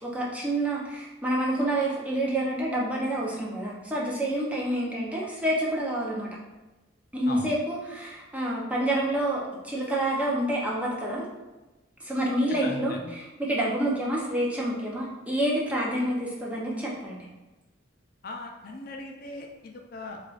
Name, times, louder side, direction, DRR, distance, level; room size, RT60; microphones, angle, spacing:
voice 1, 0.0-6.3 7.1-11.3 12.0-17.3, right 1 dB, 5° right, -5 dB, 0.6 m, -28 dB
voice 2, 12.6-13.1 18.2-20.2, left 2 dB, 50° left, 2 dB, 0.4 m, -39 dB
4.6 x 2.4 x 2.4 m, 1.1 s
head